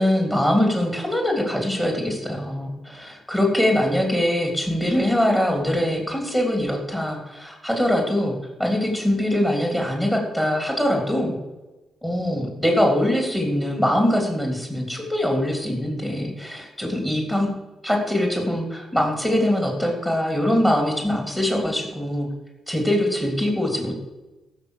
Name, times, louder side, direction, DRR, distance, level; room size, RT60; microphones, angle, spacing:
voice 1, 0.0-8.3 8.6-11.4 12.0-17.5 17.8-22.3 22.7-24.0, left 1 dB, 10° left, 1 dB, 3.5 m, -22 dB
14.5 x 6.6 x 6.5 m, 1.1 s
cardioid pair, 105°, 0 cm